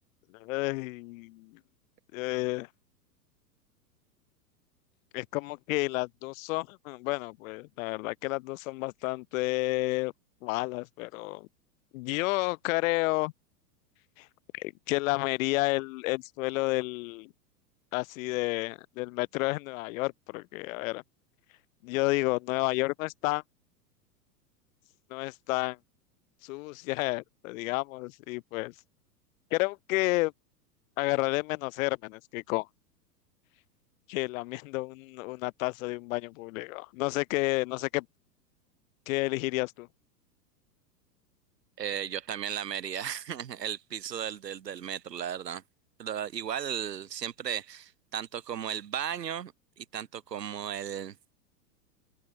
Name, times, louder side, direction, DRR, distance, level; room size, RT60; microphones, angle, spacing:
voice 1, 0.3-1.6 2.1-2.7 5.1-10.1 10.4-11.5 11.9-13.3 14.2-14.3 14.5-17.3 17.9-21.0 21.8-23.4 25.1-25.8 26.4-28.7 29.5-30.3 31.0-32.7 34.1-38.0 39.1-39.9, left 22 dB, 55° left, 3.2 m, -31 dB
voice 2, 41.8-45.6 46.0-51.2, right 9 dB, 80° right, 7.5 m, -35 dB
hypercardioid pair, 115°, 48 cm